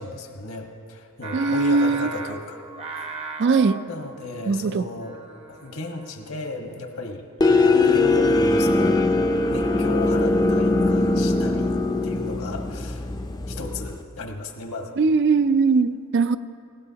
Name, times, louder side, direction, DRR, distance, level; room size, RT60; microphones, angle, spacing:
voice 1, 0.0-3.1 3.9-5.2 5.5-7.3 7.6-9.0 9.5-11.8 12.0-13.1 13.5-15.0, left 2 dB, 75° left, 3 dB, 1.4 m, -35 dB
Singing, 1.2-6.5, right 3 dB, 30° right, 0.7 m, -37 dB
voice 2, 1.3-2.1 3.4-3.8 4.5-4.8 15.0-16.4, right 4 dB, 55° right, 12 dB, 0.4 m, -20 dB
sound 1, 7.4-14.0, left 2 dB, 20° left, 0.5 m, -21 dB
18.5 x 16.5 x 2.8 m, 2.3 s
head